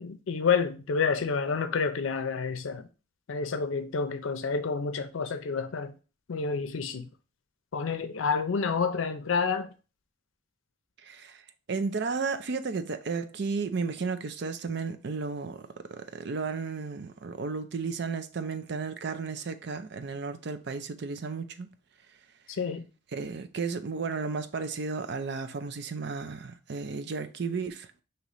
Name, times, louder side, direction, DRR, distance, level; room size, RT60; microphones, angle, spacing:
voice 1, 0.0-2.9 3.3-5.9 6.3-7.1 7.7-9.7 22.5-22.9, left 5 dB, 85° left, 0.5 m, -29 dB
voice 2, 11.0-11.4 11.7-21.7 23.1-27.9, right 4 dB, 60° right, 0.5 m, -33 dB
5.2 x 2.9 x 3.0 m
head